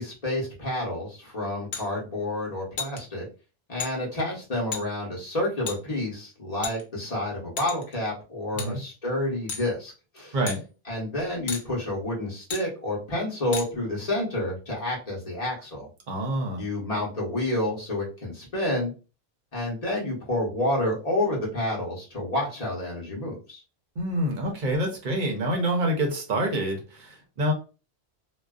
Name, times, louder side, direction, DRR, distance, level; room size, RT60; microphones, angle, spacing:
voice 1, 0.0-3.3 3.7-10.4 10.9-15.9 16.6-18.9 19.5-23.6, left 1 dB, 40° left, -4 dB, 1.0 m, -29 dB
sound 1, 1.7-1.9 2.8-3.0 3.8-3.9 4.7-4.8 5.7-5.8 6.6-7.1 7.6-7.9 8.6-8.7 9.5-9.7 10.5-10.6 11.5-11.6 12.5-12.6 13.5-13.7, left 6 dB, 55° left, 0.7 m, -33 dB
voice 2, 10.3-10.6 16.1-16.6 24.0-27.5, right 1 dB, 55° right, 2 dB, 0.7 m, -27 dB
2.4 x 2.2 x 2.3 m, 0.33 s
omnidirectional pair, 1.1 m